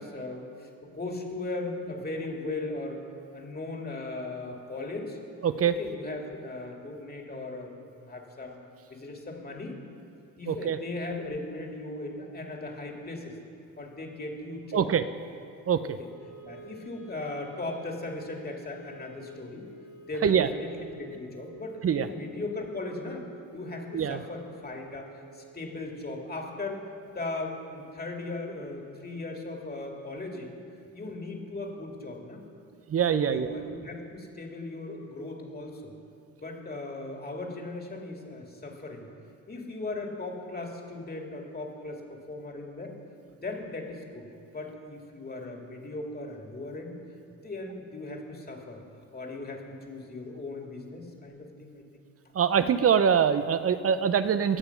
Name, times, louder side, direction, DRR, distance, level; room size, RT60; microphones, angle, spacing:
voice 1, 0.0-3.0 3.3-5.2 5.8-8.6 8.9-9.8 10.4-13.4 13.8-14.9 15.8-16.1 16.4-19.7 20.1-23.3 23.5-30.6 30.9-32.4 33.1-35.9 36.4-39.1 39.5-42.9 43.3-44.3 44.5-46.9 47.4-48.8 49.1-52.0, left 2 dB, 25° left, 1 dB, 2.2 m, -38 dB
voice 2, 5.4-5.8 10.5-10.8 14.7-15.0 15.7-16.0 20.2-20.5 21.8-22.1 23.9-24.2 32.9-33.5 52.3-54.6, right 7 dB, 40° right, 12 dB, 0.6 m, -24 dB
Wind instrument woodwind instrument, 16.0-28.2, right 3 dB, 85° left, 3.3 m, -51 dB
18.0 x 6.9 x 5.8 m, 2.5 s
supercardioid pair, 70°, 35 cm